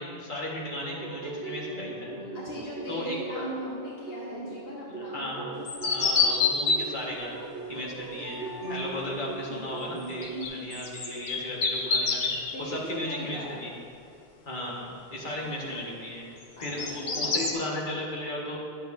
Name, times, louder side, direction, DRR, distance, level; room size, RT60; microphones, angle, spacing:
voice 1, 0.0-2.1 2.9-3.5 5.1-5.5 5.8-7.4 7.7-13.7 14.5-16.3 16.6-18.6, left 1 dB, 50° left, -5 dB, 1.7 m, -35 dB
sound 1, 0.9-10.5, right 2 dB, 70° right, 1.1 m, -38 dB
voice 2, 2.3-5.2 12.5-13.6 15.4-15.9 16.6-17.5, left 1 dB, 70° left, -5 dB, 1.3 m, -40 dB
sound 2, 5.7-6.8 10.2-12.5 16.4-17.5, left 4 dB, 90° left, 1.1 m, -27 dB
11.5 x 7.9 x 2.6 m, 2.6 s
omnidirectional pair, 1.0 m